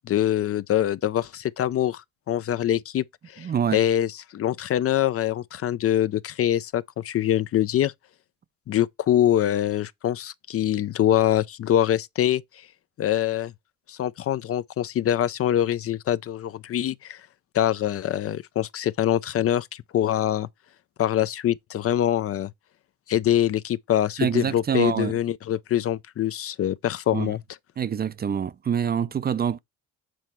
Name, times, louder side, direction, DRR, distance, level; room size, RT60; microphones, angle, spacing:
voice 1, 0.1-7.9 8.7-12.4 13.0-13.5 13.9-17.2 17.5-20.5 21.0-22.5 23.1-27.4, left 11 dB, 50° left, 0.4 m, -24 dB
voice 2, 3.4-3.8 24.2-25.2 27.1-27.3 27.8-29.6, right 8 dB, 30° right, 0.4 m, -26 dB
7.7 x 4.0 x 4.5 m
cardioid pair, 90°, 30 cm